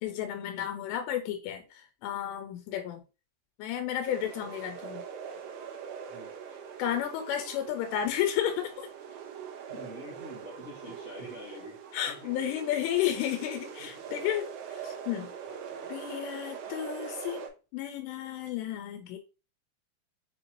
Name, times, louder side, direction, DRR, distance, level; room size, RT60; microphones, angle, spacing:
voice 1, 0.0-3.0 3.6-5.0 6.8-8.9 11.9-14.4 14.7-15.3 15.9-17.4 17.7-19.2, left 11 dB, 90° left, 2.8 m, -32 dB
sound 1, 4.1-17.5, right 7 dB, 85° right, 2.9 m, -42 dB
voice 2, 9.7-11.8 12.1-12.3 13.8-14.2 15.4-16.0, left 1 dB, 35° right, 1.1 m, -47 dB
6.9 x 2.6 x 3.0 m
omnidirectional pair, 4.7 m